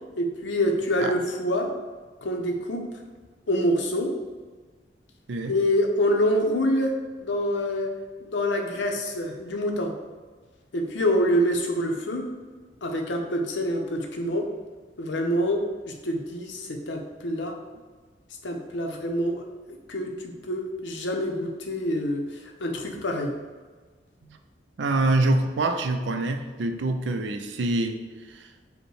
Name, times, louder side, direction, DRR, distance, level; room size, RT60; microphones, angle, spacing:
voice 1, 0.2-1.7 2.2-2.8 3.5-4.1 5.5-7.0 7.2-7.9 8.2-9.9 10.7-12.2 12.8-14.4 15.0-17.5 18.4-19.4 19.9-20.1 20.4-23.3, equal, 85° left, 2 dB, 0.7 m, -26 dB
voice 2, 24.8-28.0 28.3-28.5, right 2 dB, 85° right, 6 dB, 0.5 m, -25 dB
5.1 x 2.2 x 4.7 m, 1.4 s
head